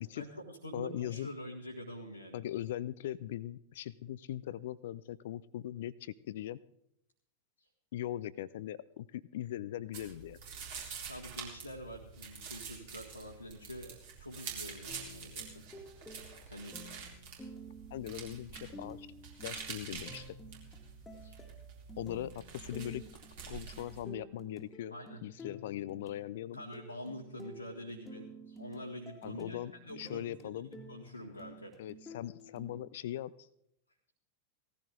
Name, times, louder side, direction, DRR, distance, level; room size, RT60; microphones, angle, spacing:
voice 1, 0.1-2.4 7.6-7.7 11.1-15.7 16.5-16.7 17.4-17.5 21.2-21.4 22.0-22.1 24.9-25.2 26.5-31.7, equal, 90° left, -3 dB, 1.8 m, -46 dB
voice 2, 0.7-1.3 2.3-6.6 7.9-10.4 17.9-19.1 19.4-20.2 22.0-23.0 23.5-24.9 25.2-26.6 29.2-30.7 31.8-33.5, left 12 dB, 55° left, 18 dB, 0.4 m, -40 dB
sound 1, 9.9-24.0, right 6 dB, 50° right, 3.8 m, -47 dB
sound 2, 14.9-32.8, right 1 dB, 10° left, 1.9 m, -52 dB
18.0 x 14.5 x 3.7 m, 0.73 s
figure-of-eight pair, 90°, 0 cm